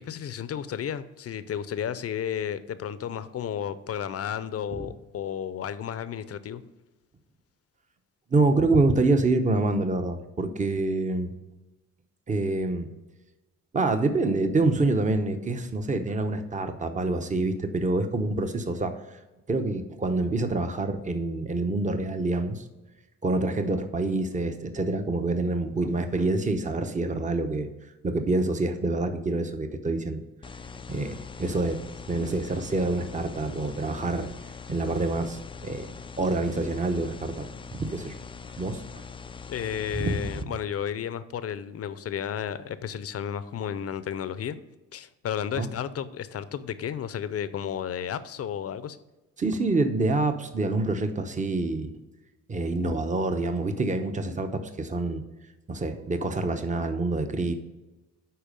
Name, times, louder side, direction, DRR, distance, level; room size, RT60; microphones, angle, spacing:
voice 1, 0.0-6.6 39.5-44.6 44.9-49.0, left 9 dB, 50° left, 14 dB, 0.7 m, -33 dB
voice 2, 8.3-11.3 12.3-12.9 13.7-19.0 19.5-22.6 23.2-27.7 28.0-30.2 30.5-30.6 30.9-31.8 32.1-34.3 34.7-35.9 36.2-38.2 38.6-38.8 39.9-40.2 45.6-45.7 49.4-51.9 52.5-55.2 55.7-57.5, right 2 dB, 25° right, 7 dB, 0.9 m, -26 dB
sound 1, 30.4-40.4, left 5 dB, 20° left, 0.4 m, -42 dB
10.5 x 4.1 x 5.3 m, 1.1 s
cardioid pair, 90°, 30 cm